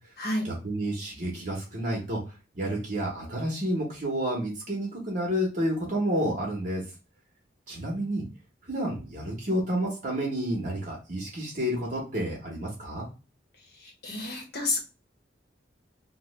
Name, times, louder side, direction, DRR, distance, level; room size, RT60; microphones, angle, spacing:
voice 1, 0.4-2.2 2.5-6.8 7.7-8.2 8.6-13.1, equal, 45° right, -3 dB, 0.9 m, -30 dB
voice 2, 13.8-14.8, left 2 dB, 60° left, 1 dB, 0.9 m, -30 dB
3.0 x 2.1 x 3.0 m, 0.31 s
head